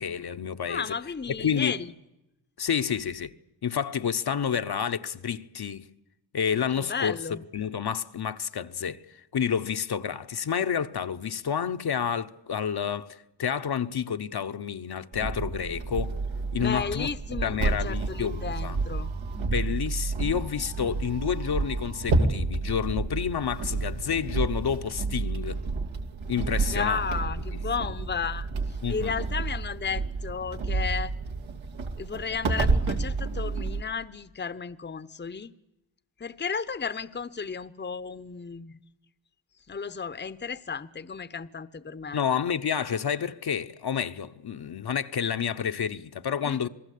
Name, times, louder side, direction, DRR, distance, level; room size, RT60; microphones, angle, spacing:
voice 1, 0.0-0.8 1.4-1.8 2.6-3.3 3.6-5.9 6.3-7.2 7.5-9.0 9.3-16.1 16.5-17.1 17.4-18.8 19.3-25.6 26.3-27.0 28.8-29.1 42.1-46.7, left 7 dB, 55° left, 1.1 m, -29 dB
voice 2, 0.7-1.9 6.8-7.4 16.6-19.1 26.7-31.1 32.0-35.5 36.2-38.8 39.7-42.2 46.4-46.7, left 5 dB, 25° left, 0.9 m, -33 dB
sound 1, 15.1-33.8, right 3 dB, 85° right, 2.7 m, -30 dB
27.5 x 19.0 x 8.5 m
cardioid pair, 65°, 45 cm